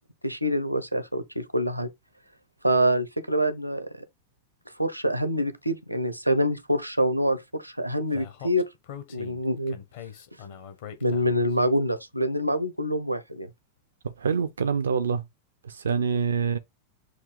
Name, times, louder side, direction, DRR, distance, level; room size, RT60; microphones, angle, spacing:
voice 1, 0.2-1.9 2.6-4.0 4.8-8.7 9.1-9.8 11.0-13.5, equal, 90° right, 0.8 m, -26 dB
Speech, 8.1-11.5, left 8 dB, 55° left, 1.2 m, -42 dB
voice 2, 14.0-15.2 15.6-16.6, right 6 dB, 70° right, 0.4 m, -26 dB
6.6 x 2.8 x 5.1 m
figure-of-eight pair, 90°, 0 cm